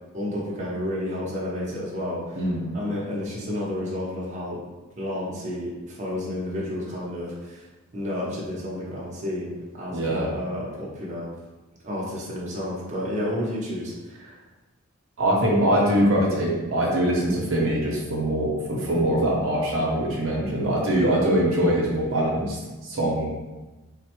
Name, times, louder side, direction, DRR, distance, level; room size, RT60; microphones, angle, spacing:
voice 1, 0.1-2.4 2.7-4.6 5.0-7.7 7.9-11.3 11.8-14.4, left 1 dB, 35° right, -6 dB, 0.7 m, -31 dB
voice 2, 2.4-2.7 9.9-10.3 15.2-23.3, right 1 dB, 70° right, -3 dB, 0.7 m, -23 dB
3.9 x 2.1 x 2.9 m, 1.1 s
head